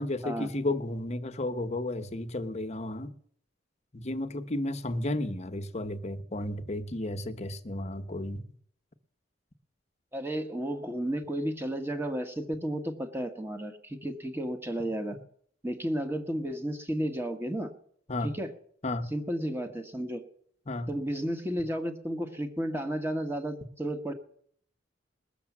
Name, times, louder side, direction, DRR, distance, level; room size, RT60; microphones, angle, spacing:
voice 1, 0.0-3.1 3.9-8.4 18.1-18.3 18.8-19.1 20.7-20.9, left 1 dB, 35° left, 1.0 m, -33 dB
voice 2, 10.1-15.2 15.6-17.7 18.2-18.5 19.1-20.2 20.9-24.1, right 1 dB, 10° right, 1.4 m, -33 dB
19.5 x 7.0 x 7.3 m
head